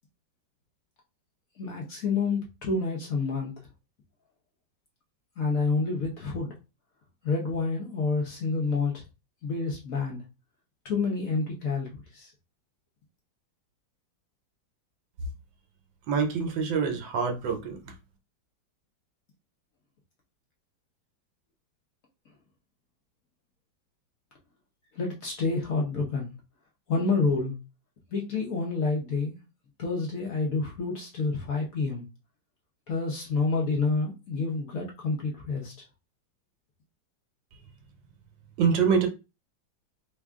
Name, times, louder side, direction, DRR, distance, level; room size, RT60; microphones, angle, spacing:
voice 1, 1.6-3.5 5.4-6.5 7.2-9.0 9.4-10.2 10.8-12.3 24.9-26.3 26.9-27.5 28.1-29.3 29.8-32.1 32.9-35.7, left 4 dB, 60° left, 1.0 m, -28 dB
voice 2, 16.1-17.8 38.6-39.1, right 6 dB, 75° right, 1.3 m, -25 dB
3.4 x 2.3 x 3.5 m
omnidirectional pair, 2.1 m